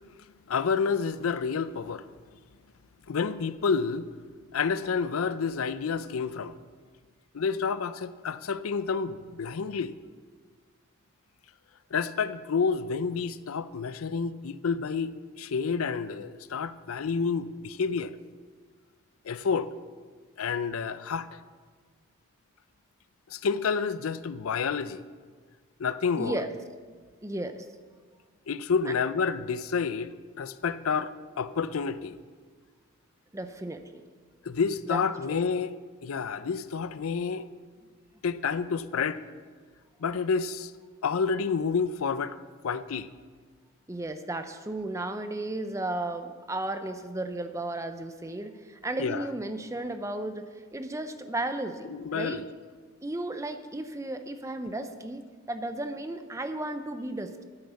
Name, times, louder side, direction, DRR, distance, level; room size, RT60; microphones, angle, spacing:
voice 1, 0.5-2.1 3.1-4.1 4.5-6.5 7.3-9.9 11.9-15.1 15.4-18.1 19.3-19.7 20.4-21.3 23.3-25.0 25.8-26.4 28.5-30.1 30.4-32.2 34.5-35.7 36.0-37.4 38.2-39.2 40.0-40.7 41.0-42.4 42.6-43.1 49.0-49.3 51.9-52.4, left 5 dB, 90° left, 0.5 m, -29 dB
voice 2, 26.2-26.5 27.2-27.7 28.9-29.0 33.3-34.0 34.9-35.0 35.3-35.4 43.9-52.4 53.0-57.4, right 2 dB, 15° right, 0.6 m, -34 dB
9.8 x 8.3 x 7.0 m
head